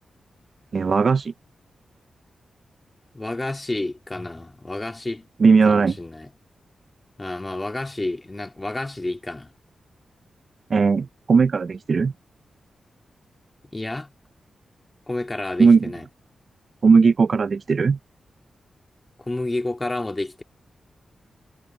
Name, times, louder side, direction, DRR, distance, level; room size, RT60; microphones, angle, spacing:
voice 1, 0.7-1.3 5.4-5.9 10.7-12.1 15.6-15.8 16.8-18.0, right 5 dB, 50° right, 0.3 m, -17 dB
voice 2, 3.1-5.3 5.7-6.3 7.2-9.5 13.7-14.1 15.1-16.1 19.2-20.4, left 2 dB, 20° left, 2.4 m, -30 dB
cardioid pair, 85°, 0 cm